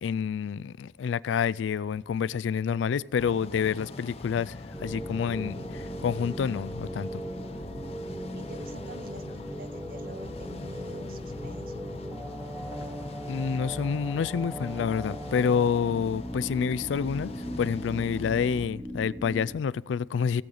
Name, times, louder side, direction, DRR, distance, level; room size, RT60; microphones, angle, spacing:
voice 1, 0.0-7.2 13.3-20.4, left 7 dB, 85° left, 0.3 m, -28 dB
sound 1, 3.2-18.7, left 2 dB, 35° left, 0.7 m, -41 dB
sound 2, 4.7-19.5, equal, 10° right, 1.0 m, -39 dB
voice 2, 8.3-11.9, right 2 dB, 50° right, 0.7 m, -47 dB
16.5 x 8.4 x 4.0 m
head